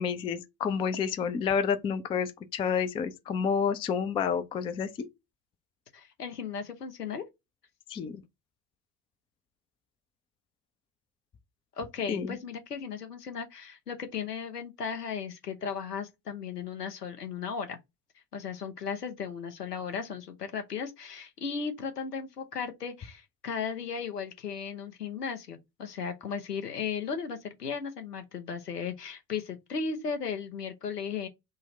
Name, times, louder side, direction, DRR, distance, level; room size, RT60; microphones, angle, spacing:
voice 1, 0.0-5.1 7.9-8.2 12.1-12.4, left 6 dB, 15° left, 0.3 m, -29 dB
voice 2, 5.9-7.2 11.8-17.8 18.3-31.3, left 6 dB, 85° left, 0.9 m, -36 dB
3.9 x 2.1 x 3.8 m
figure-of-eight pair, 65°, 46 cm